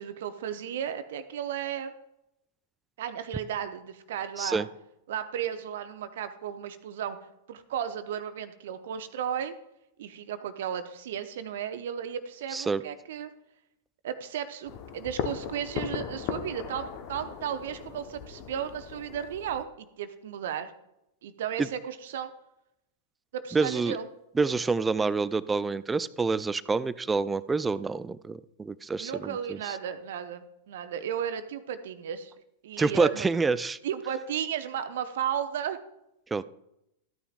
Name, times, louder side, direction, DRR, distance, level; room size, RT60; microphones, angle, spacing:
voice 1, 0.0-1.9 3.0-4.7 5.1-7.2 7.5-9.5 10.0-13.3 14.0-20.7 21.2-22.3 23.3-24.1 29.0-32.3 32.6-33.3 33.8-35.8, right 9 dB, 55° right, 10 dB, 0.7 m, -34 dB
voice 2, 12.5-12.8 21.6-21.7 23.5-24.0 24.4-29.8 32.8-33.8 36.3-36.4, right 4 dB, 10° right, 17 dB, 0.3 m, -27 dB
sound 1, 14.7-19.6, left 8 dB, 40° left, 1.0 m, -37 dB
13.5 x 9.7 x 2.4 m, 0.83 s
figure-of-eight pair, 95°, 0 cm